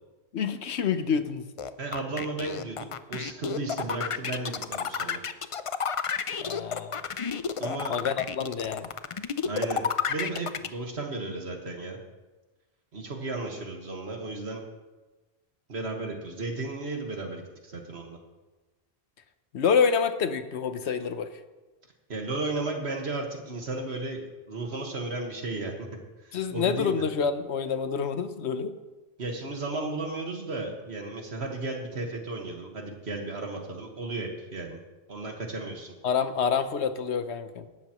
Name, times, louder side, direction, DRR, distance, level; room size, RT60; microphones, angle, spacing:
voice 1, 0.3-1.4 6.4-7.0 7.9-8.9 19.5-21.4 26.3-28.7 36.0-37.6, left 6 dB, 85° left, 10 dB, 1.1 m, -27 dB
sound 1, 1.6-10.7, left 6 dB, 45° left, 0.4 m, -30 dB
voice 2, 1.8-5.2 7.6-8.0 9.5-12.0 12.9-14.6 15.7-18.2 22.1-25.9 26.2-26.9 29.2-34.8 35.1-35.9, right 2 dB, 75° right, 2 dB, 2.0 m, -34 dB
17.5 x 12.5 x 3.1 m, 1.2 s
omnidirectional pair, 1.1 m